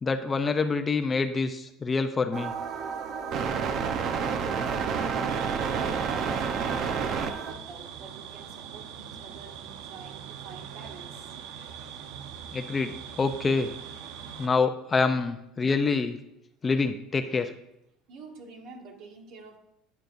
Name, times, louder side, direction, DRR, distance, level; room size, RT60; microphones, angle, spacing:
voice 1, 0.0-2.5 12.5-13.7 14.4-16.2 16.6-17.5, left 4 dB, 20° left, 8 dB, 0.6 m, -26 dB
sound 1, 2.3-7.5, right 6 dB, 45° right, 0.8 m, -29 dB
voice 2, 2.8-11.4 18.1-19.6, right 4 dB, 60° right, 2 dB, 1.8 m, -47 dB
sound 2, 5.3-14.5, right 8 dB, 80° right, 0.8 m, -42 dB
11.5 x 9.4 x 2.6 m, 0.81 s
cardioid pair, 150°, 0 cm